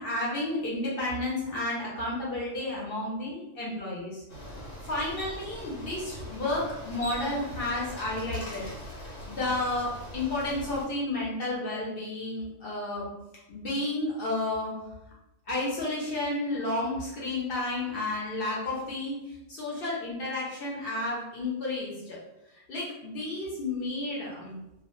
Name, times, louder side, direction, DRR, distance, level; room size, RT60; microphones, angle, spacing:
voice 1, 0.0-8.7 9.3-13.1 13.5-14.7 15.5-22.2 22.5-24.6, left 2 dB, 60° left, -5 dB, 0.8 m, -32 dB
Bicycle, 4.3-10.8, equal, 85° left, 1.0 m, -41 dB
2.2 x 2.1 x 2.9 m, 0.92 s
omnidirectional pair, 1.2 m